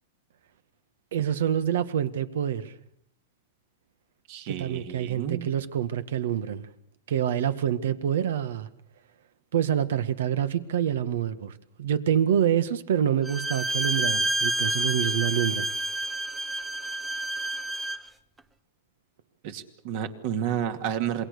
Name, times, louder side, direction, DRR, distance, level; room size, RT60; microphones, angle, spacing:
voice 1, 1.1-2.7 4.5-6.7 7.1-8.7 9.5-11.5 11.8-15.7, right 9 dB, 80° right, 13 dB, 1.7 m, -26 dB
voice 2, 4.3-5.5 19.4-21.3, right 9 dB, 55° right, 8 dB, 2.4 m, -31 dB
Bowed string instrument, 13.2-18.1, right 2 dB, 10° right, 1.0 m, -29 dB
27.5 x 21.5 x 6.8 m, 0.68 s
supercardioid pair, 145°, 0 cm